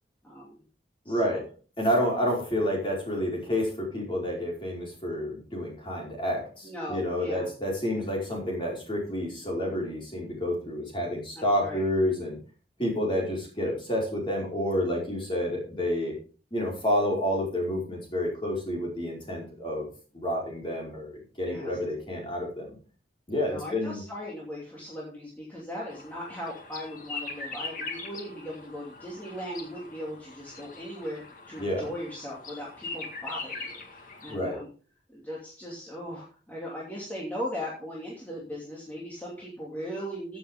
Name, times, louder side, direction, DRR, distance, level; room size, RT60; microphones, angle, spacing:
voice 1, 0.2-0.6 1.0-1.4 6.6-7.5 7.9-8.0 11.3-11.8 21.4-21.8 23.3-34.7 35.1-40.4, equal, 10° left, -6 dB, 2.7 m, -38 dB
voice 2, 1.0-1.4 1.8-12.4 12.8-16.2 16.5-19.9 20.1-22.7 23.3-24.0 31.6-31.9 34.3-34.6, equal, 30° left, -2 dB, 5.0 m, -29 dB
sound 1, 25.9-34.3, left 4 dB, 45° left, 1.9 m, -41 dB
15.5 x 7.1 x 3.7 m, 0.38 s
head